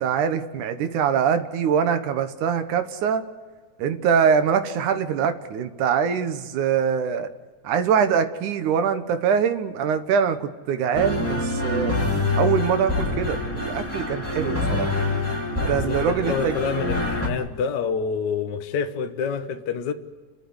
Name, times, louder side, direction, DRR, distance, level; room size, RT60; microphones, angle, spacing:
voice 1, 0.0-3.2 3.8-7.3 7.6-12.0 12.4-14.9 15.5-16.6, right 7 dB, 80° right, 2.7 m, -23 dB
sound 1, 10.9-17.3, left 2 dB, 5° left, 2.1 m, -26 dB
voice 2, 15.6-19.9, left 6 dB, 60° left, 1.1 m, -27 dB
29.5 x 12.5 x 9.7 m
omnidirectional pair, 3.5 m